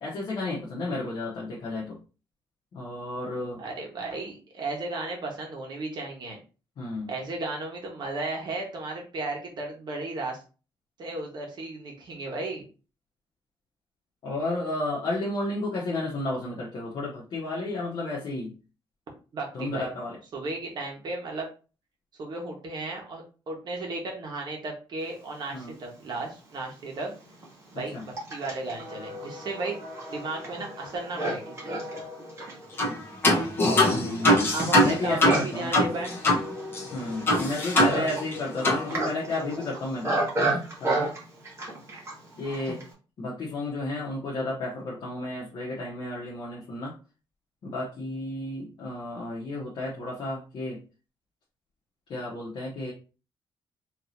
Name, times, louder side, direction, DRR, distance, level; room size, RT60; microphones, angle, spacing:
voice 1, 0.0-2.0 2.7-3.6 6.8-7.1 14.2-18.5 19.5-20.2 25.5-25.7 27.9-28.0 33.9-34.5 34.8-35.7 36.9-40.2 40.5-41.1 42.4-42.8 43.2-46.9 47.6-50.8 52.1-52.9, left 2 dB, 55° left, -5 dB, 1.0 m, -32 dB
voice 2, 3.6-6.4 7.1-10.4 11.0-12.6 19.3-19.9 20.3-21.5 22.2-27.1 27.7-29.8 30.1-32.1 34.5-36.2, right 2 dB, 50° right, 1 dB, 1.3 m, -35 dB
Livestock farm animals working animals, 26.2-26.3 27.0-42.9, right 2 dB, 30° right, 1.3 m, -33 dB
sound 1, 32.8-33.0 33.2-36.4 36.7-36.8 37.3-38.4 38.6-38.8, left 1 dB, 25° left, 1.1 m, -22 dB
4.6 x 2.9 x 2.7 m, 0.35 s
wide cardioid pair, 165°, 10 cm